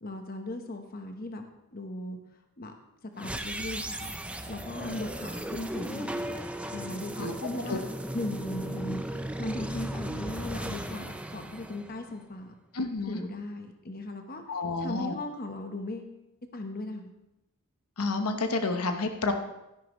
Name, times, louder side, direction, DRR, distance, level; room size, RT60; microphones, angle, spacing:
voice 1, 0.0-1.4 1.7-2.2 2.6-2.7 3.0-4.1 4.5-6.2 6.7-7.8 8.1-9.0 9.4-12.6 13.1-14.4 14.8-16.2 16.5-17.1, left 2 dB, 40° left, 5 dB, 1.0 m, -37 dB
sound 1, 3.2-12.4, right 1 dB, 5° right, 0.4 m, -36 dB
voice 2, 12.7-13.2 14.5-15.2 18.0-19.3, left 3 dB, 90° left, 6 dB, 0.9 m, -30 dB
13.0 x 10.5 x 3.1 m, 0.91 s
head